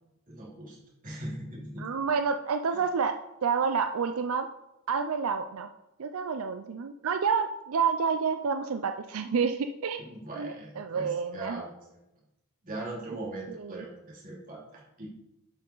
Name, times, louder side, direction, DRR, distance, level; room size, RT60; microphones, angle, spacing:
voice 1, 0.3-0.8 1.0-1.9 10.0-11.7 12.6-15.1, right 1 dB, 40° right, -4 dB, 2.9 m, -40 dB
voice 2, 1.8-4.5 4.9-5.7 6.0-10.0 10.4-11.6 13.5-13.8, right 5 dB, 85° right, 8 dB, 0.5 m, -29 dB
11.0 x 5.6 x 3.9 m, 0.89 s
head